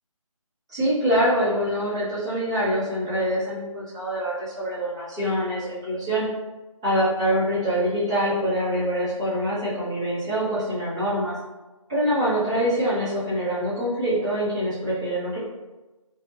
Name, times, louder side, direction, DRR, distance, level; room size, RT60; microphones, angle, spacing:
voice 1, 0.7-6.3 6.8-11.3 11.9-15.4, equal, 10° right, -14 dB, 0.6 m, -25 dB
2.7 x 2.1 x 2.8 m, 1.1 s
figure-of-eight pair, 165°, 18 cm